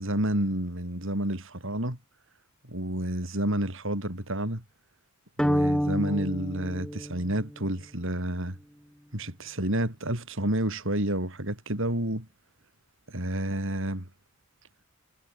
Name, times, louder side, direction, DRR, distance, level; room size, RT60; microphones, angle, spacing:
voice 1, 0.0-2.0 2.7-4.6 5.4-8.6 9.1-12.3 13.1-14.1, right 1 dB, 65° right, 6.4 m, -30 dB
sound 1, 5.4-7.7, equal, 5° left, 4.7 m, -28 dB
head